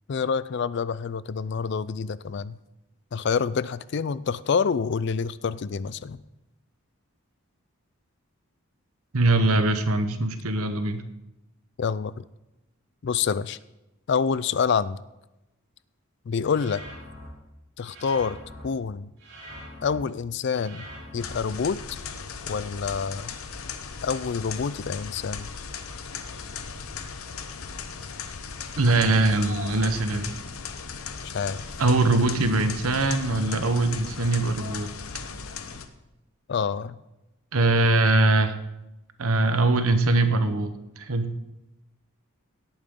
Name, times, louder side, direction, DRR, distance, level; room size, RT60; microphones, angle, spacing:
voice 1, 0.1-2.6 3.1-6.2 11.8-12.2 13.0-13.6 14.1-15.0 16.3-16.8 17.8-18.4 18.6-19.1 19.8-21.8 22.5-23.3 24.0-25.5 31.3-31.6 36.5-37.0, left 6 dB, 55° left, 17 dB, 0.4 m, -27 dB
voice 2, 9.1-11.0 28.8-30.3 31.8-34.9 37.5-38.5 39.2-41.3, right 2 dB, 85° right, 9 dB, 1.0 m, -22 dB
sound 1, 16.5-17.3 17.8-18.6 19.2-20.0 20.5-21.3, equal, 60° right, 4.8 m, -43 dB
sound 2, 21.2-35.9, left 5 dB, 80° left, 0.9 m, -37 dB
17.5 x 8.8 x 3.8 m, 0.95 s
head